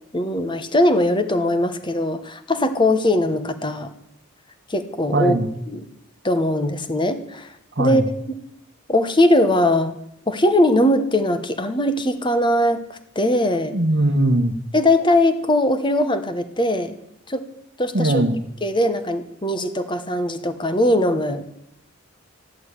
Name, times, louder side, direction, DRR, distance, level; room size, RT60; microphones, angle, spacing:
voice 1, 0.1-3.9 4.7-5.4 5.7-5.9 6.2-7.5 7.8-8.0 8.3-8.4 8.9-10.0 10.3-12.8 13.1-13.8 14.7-16.9 17.3-17.5 17.8-18.2 18.6-21.5, left 1 dB, 20° left, 10 dB, 1.0 m, -20 dB
voice 2, 5.1-5.5 7.8-8.0 13.7-14.5 17.9-18.4, right 1 dB, 50° right, 8 dB, 1.2 m, -20 dB
14.0 x 11.0 x 8.3 m, 0.79 s
head